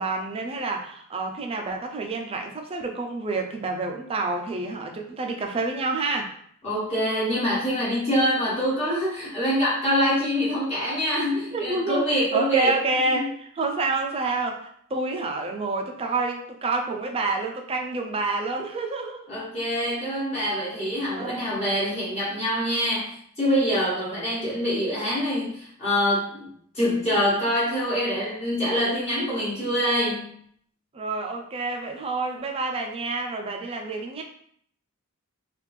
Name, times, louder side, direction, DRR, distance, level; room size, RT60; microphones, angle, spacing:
voice 1, 0.0-6.3 11.5-19.3 21.2-21.5 30.9-34.2, right 3 dB, 25° right, 3 dB, 0.4 m, -28 dB
voice 2, 6.6-12.8 13.1-13.3 19.3-30.3, equal, 30° left, -9 dB, 1.2 m, -25 dB
3.3 x 2.4 x 3.2 m, 0.65 s
head